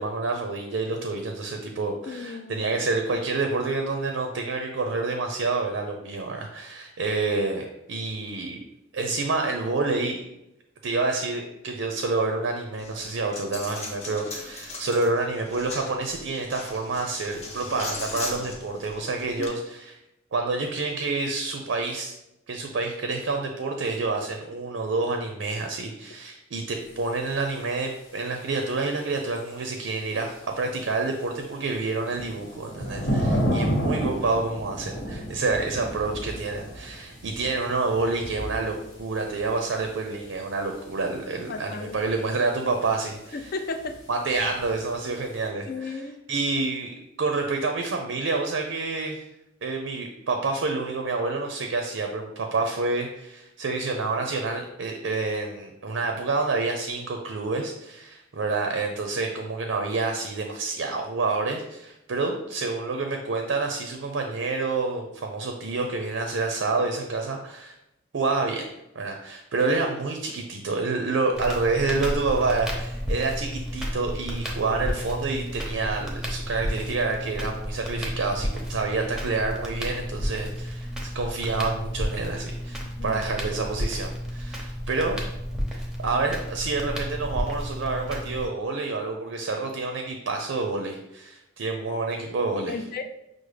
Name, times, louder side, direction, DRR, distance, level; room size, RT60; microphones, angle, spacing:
voice 1, 0.0-8.6 8.9-10.2 10.8-20.0 20.3-22.1 22.5-43.5 44.1-46.0 46.3-49.2 49.6-67.7 68.1-68.7 68.9-85.2 85.7-92.8, right 3 dB, 75° right, 4 dB, 0.5 m, -28 dB
voice 2, 2.1-2.6 19.4-19.6 33.4-33.8 41.5-42.0 43.3-44.0 45.7-46.2 82.8-83.3 92.7-93.0, left 4 dB, 50° left, 8 dB, 0.4 m, -34 dB
Coin (dropping), 12.8-19.5, left 2 dB, 35° left, 0.8 m, -38 dB
sound 1, 26.8-28.1 28.6-28.7 29.3-30.6 31.1-45.5, equal, 70° left, 1.2 m, -33 dB
Crackle, 71.3-88.5, equal, 5° right, 0.7 m, -32 dB
6.1 x 2.0 x 3.2 m, 0.88 s
head